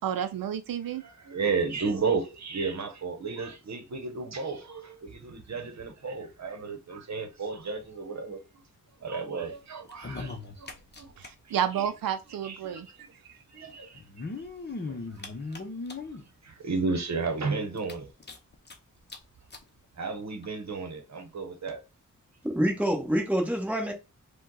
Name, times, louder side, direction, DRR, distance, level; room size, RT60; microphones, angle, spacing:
voice 1, 0.0-1.0 11.2-12.9 13.3-13.4, right 9 dB, 85° right, 0.5 m, -31 dB
voice 2, 0.9-8.4 9.0-11.1 11.4-11.6 12.4-13.1 13.5-14.0 14.9-15.6 16.4-18.1 20.0-21.8, right 4 dB, 55° right, 1.0 m, -33 dB
sound 1, 9.8-11.3 11.6-11.7 11.8-11.9 13.0-13.1 13.9-16.2 16.8-16.9 17.3-17.4 17.8-18.7 19.1-19.2 19.5-19.6 20.4-20.5, left 3 dB, 30° left, 0.8 m, -38 dB
voice 3, 22.4-23.9, equal, 5° right, 1.1 m, -26 dB
5.0 x 2.3 x 3.9 m
wide cardioid pair, 155°, 33 cm